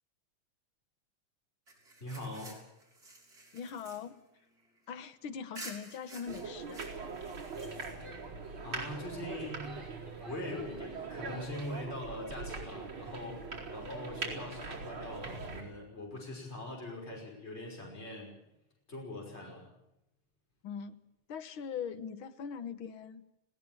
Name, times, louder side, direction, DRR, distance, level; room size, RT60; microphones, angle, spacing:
sound 1, 1.7-5.1 5.5-8.2, right 2 dB, 40° right, 5.8 m, -51 dB
voice 1, 2.0-2.6 8.6-9.8 10.2-18.3 18.9-19.7, left 1 dB, 30° left, 0 dB, 5.9 m, -42 dB
voice 2, 3.5-4.2 4.9-6.9 20.6-21.0 21.3-23.2, left 7 dB, 70° left, 11 dB, 1.9 m, -41 dB
sound 2, 6.3-15.6, right 4 dB, 60° right, 5.2 m, -42 dB
Female speech woman speaking / Yell, 7.4-11.8, right 1 dB, 25° right, 7.3 m, -54 dB
20.5 x 17.5 x 8.9 m, 0.89 s
omnidirectional pair, 2.4 m